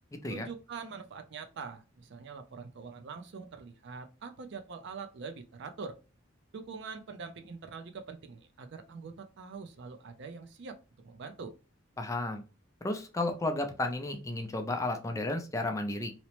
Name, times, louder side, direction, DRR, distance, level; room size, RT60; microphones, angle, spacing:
voice 1, 0.3-6.0 6.5-10.8 11.0-11.5, right 5 dB, 60° right, 8 dB, 0.4 m, -44 dB
voice 2, 12.0-12.4 12.8-16.1, left 2 dB, 15° left, 5 dB, 0.4 m, -33 dB
2.8 x 2.0 x 2.9 m, 0.32 s
head